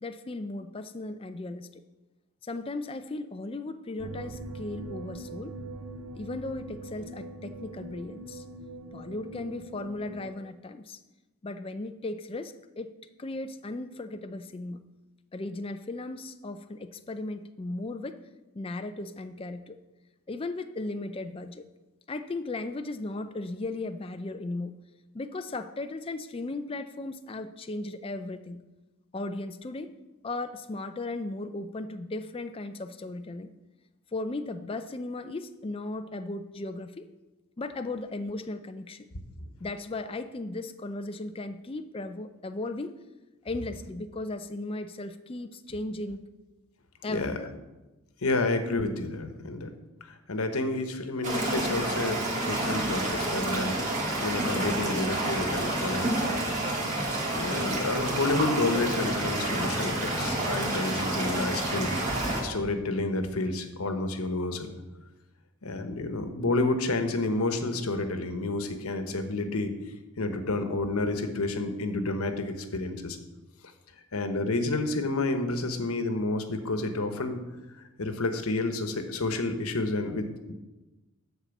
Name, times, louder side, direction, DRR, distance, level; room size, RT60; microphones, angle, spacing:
voice 1, 0.0-1.8 2.4-5.6 6.2-8.4 8.9-11.0 11.4-12.9 13.2-14.8 15.3-18.2 18.5-19.8 20.3-21.6 22.1-24.8 25.1-28.6 29.1-29.9 30.2-33.5 34.1-37.1 37.6-39.1 39.6-43.0 43.4-46.2 47.0-47.5, left 2 dB, 25° left, 8 dB, 0.4 m, -36 dB
sound 1, 4.0-10.3, right 2 dB, 80° right, 0.7 m, -42 dB
voice 2, 48.2-49.7 50.3-53.8 54.2-56.2 57.3-61.9 62.4-64.7 65.6-69.7 70.2-73.2 74.1-77.4 78.0-80.5, left 2 dB, 85° left, 7 dB, 1.1 m, -30 dB
sound 2, 51.2-62.4, right 1 dB, 35° right, 2.0 m, -29 dB
12.0 x 4.3 x 7.1 m, 1.1 s
head